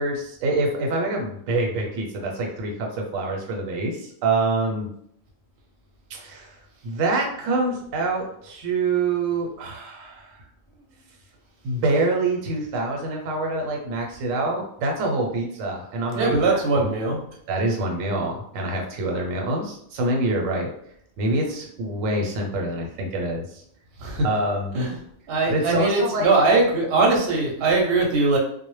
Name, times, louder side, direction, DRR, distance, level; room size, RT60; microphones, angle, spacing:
voice 1, 0.0-4.9 6.1-6.6 6.8-10.4 11.6-16.9 17.5-20.7 21.2-23.6 24.2-24.7 25.5-26.3, right 2 dB, 90° right, 0 dB, 1.0 m, -26 dB
voice 2, 16.2-17.2 24.0-24.3 24.7-25.0 25.3-28.4, right 3 dB, 60° right, -1 dB, 0.7 m, -21 dB
2.1 x 2.1 x 3.0 m, 0.69 s
omnidirectional pair, 1.3 m